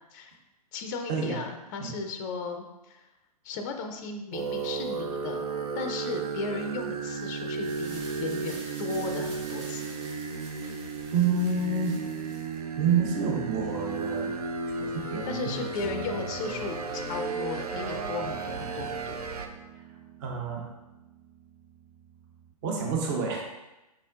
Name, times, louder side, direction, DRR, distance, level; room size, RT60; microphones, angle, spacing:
voice 1, 0.7-3.1 3.4-5.4 5.7-9.9 15.3-19.2, left 4 dB, 30° left, 5 dB, 0.4 m, -35 dB
sound 1, 4.3-19.5, right 4 dB, 70° right, 0.5 m, -34 dB
sound 2, 7.4-12.6, right 2 dB, 50° right, 1.4 m, -47 dB
voice 2, 11.1-12.0 12.8-14.4 14.7-15.7 20.2-20.7 22.6-23.4, right 5 dB, 30° right, 0 dB, 0.8 m, -28 dB
Guitar, 15.8-22.5, right 4 dB, 5° right, 1.2 m, -44 dB
4.5 x 4.1 x 2.4 m, 0.99 s
figure-of-eight pair, 120°, 20 cm